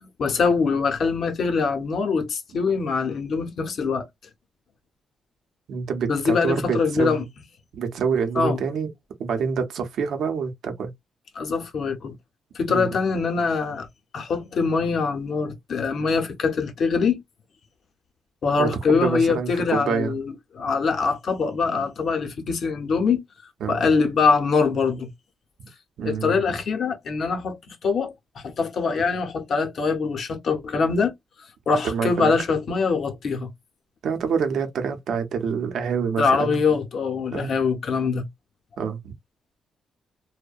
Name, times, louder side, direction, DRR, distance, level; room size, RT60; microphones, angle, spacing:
voice 1, 0.0-4.1 6.1-7.2 8.4-8.6 11.3-12.2 12.5-13.9 14.1-17.2 18.4-23.2 23.7-25.1 26.1-28.1 28.4-31.1 31.7-33.5 36.2-38.3, left 5 dB, 60° left, 0.6 m, -23 dB
voice 2, 5.7-7.3 7.7-8.9 9.2-10.9 12.7-12.9 18.6-20.1 23.6-23.8 26.0-26.6 31.8-32.3 34.0-36.6 37.3-37.5 38.8-39.1, right 6 dB, 75° right, 0.6 m, -26 dB
2.6 x 2.1 x 2.3 m
cardioid pair, 125°, 0 cm